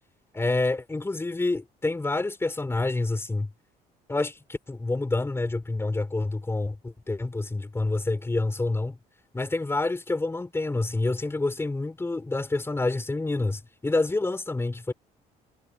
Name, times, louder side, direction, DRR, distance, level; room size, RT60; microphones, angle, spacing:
voice 1, 0.3-3.5 4.1-9.0 9.3-14.9, left 2 dB, 15° left, 3.2 m, -28 dB
cardioid pair, 110°, 17 cm